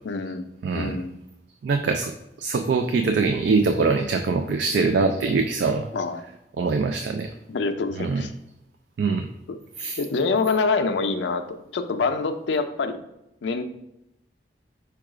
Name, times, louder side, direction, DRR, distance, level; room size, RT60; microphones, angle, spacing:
voice 1, 0.0-1.2 5.9-6.2 7.5-8.3 9.5-9.6 10.0-11.4 11.7-13.0 13.4-13.6, left 4 dB, 85° left, 7 dB, 0.4 m, -25 dB
voice 2, 0.6-0.9 1.6-2.1 2.4-5.9 6.6-7.3 8.0-8.3 9.0-9.3 9.8-10.0, right 4 dB, 75° right, 6 dB, 0.3 m, -23 dB
4.6 x 2.3 x 4.8 m, 0.87 s
head